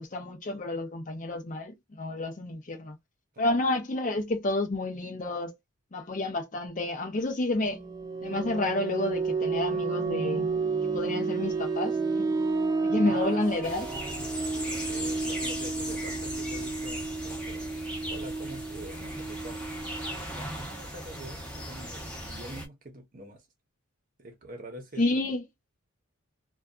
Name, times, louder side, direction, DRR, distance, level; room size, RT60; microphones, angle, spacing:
voice 1, 0.0-3.0 3.4-5.5 5.9-7.8 8.2-10.5 10.8-12.3 12.9-13.9 25.0-25.4, left 2 dB, 35° left, 0.6 m, -30 dB
sound 1, 7.6-20.1, right 4 dB, 20° right, 0.4 m, -31 dB
voice 2, 13.1-13.4 13.8-14.3 14.8-17.7 18.1-19.6 20.3-23.4 24.2-25.2, right 2 dB, 40° right, 0.8 m, -45 dB
sound 2, 13.6-22.7, equal, 5° left, 0.8 m, -38 dB
2.6 x 2.3 x 2.3 m
head